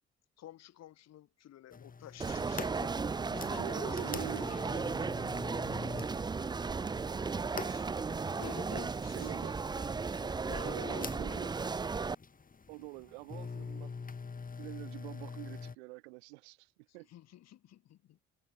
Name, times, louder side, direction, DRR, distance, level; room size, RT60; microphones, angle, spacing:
voice 1, 0.4-4.8 7.6-11.7 16.9-18.2, left 12 dB, 55° left, 1.1 m, -51 dB
sound 1, 1.7-15.8, left 5 dB, 25° left, 1.5 m, -45 dB
sound 2, 2.2-12.1, right 4 dB, 15° right, 0.4 m, -35 dB
voice 2, 3.6-4.5 4.7-5.1 9.1-9.7 10.6-11.5 12.7-13.9 14.6-17.1, right 27 dB, 80° right, 0.8 m, -45 dB
hypercardioid pair, 50°, 32 cm